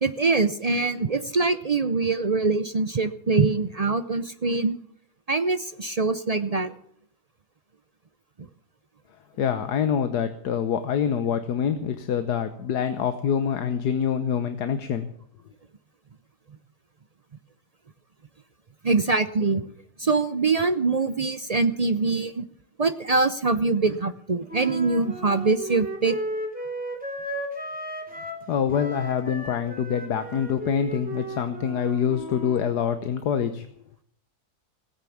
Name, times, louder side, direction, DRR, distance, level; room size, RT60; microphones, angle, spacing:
voice 1, 0.0-4.8 5.3-6.7 18.8-19.6 20.0-22.5 22.8-26.2, right 3 dB, 55° right, 11 dB, 0.4 m, -23 dB
voice 2, 9.4-15.1 28.5-33.7, left 8 dB, 75° left, 9 dB, 1.5 m, -25 dB
Wind instrument woodwind instrument, 24.5-28.4 28.7-32.7, equal, 5° right, 3.3 m, -35 dB
17.0 x 9.7 x 7.2 m, 0.63 s
omnidirectional pair, 1.7 m